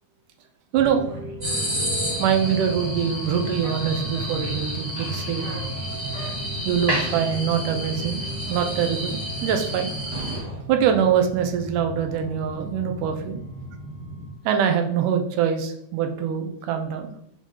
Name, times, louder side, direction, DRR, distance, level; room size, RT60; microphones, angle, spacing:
sound 1, 0.7-14.3, right 1 dB, 55° right, 1.1 m, -36 dB
voice 1, 0.7-1.0 2.2-5.5 6.7-8.2 8.5-9.9 10.7-13.4 14.5-17.1, right 8 dB, 75° right, 6 dB, 2.1 m, -24 dB
sound 2, 1.4-10.4, right 1 dB, 25° right, 1.4 m, -30 dB
5.2 x 4.9 x 5.5 m, 0.70 s
omnidirectional pair, 4.1 m